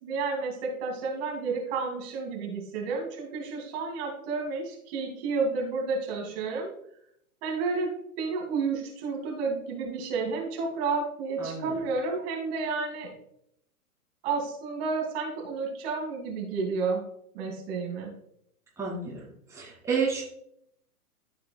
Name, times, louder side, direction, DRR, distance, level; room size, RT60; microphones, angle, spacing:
voice 1, 0.0-6.7 7.4-13.1 14.2-17.0 17.3-18.1, right 4 dB, 40° right, -1 dB, 2.6 m, -31 dB
voice 2, 11.4-11.7 18.8-19.2 19.5-20.2, right 5 dB, 5° right, -6 dB, 2.4 m, -30 dB
14.0 x 4.8 x 2.3 m, 0.72 s
figure-of-eight pair, 110°, 44 cm